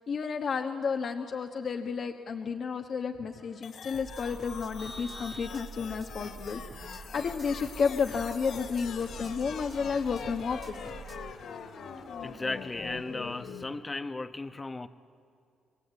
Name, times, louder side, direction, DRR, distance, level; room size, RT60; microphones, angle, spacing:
voice 1, 0.1-10.8, left 5 dB, 55° left, 4 dB, 1.3 m, -32 dB
sound 1, 3.6-13.6, left 6 dB, 70° left, 2.4 m, -44 dB
sound 2, 3.9-11.3, right 4 dB, 35° right, 1.5 m, -46 dB
Vehicle horn car horn honking, 4.8-6.2, equal, ahead, 1.9 m, -47 dB
voice 2, 12.2-14.9, left 3 dB, 20° left, 10 dB, 1.0 m, -36 dB
27.0 x 22.0 x 8.4 m, 2.5 s
cardioid pair, 90°, 0 cm